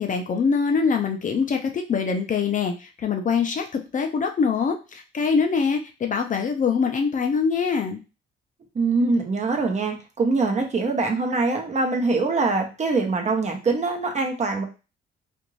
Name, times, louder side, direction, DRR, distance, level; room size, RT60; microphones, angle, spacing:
voice 1, 0.0-8.0, left 5 dB, 40° left, 4 dB, 0.6 m, -24 dB
voice 2, 8.7-14.6, right 3 dB, 35° right, 2 dB, 0.8 m, -23 dB
2.6 x 2.5 x 3.0 m, 0.31 s
cardioid pair, 90°, 20 cm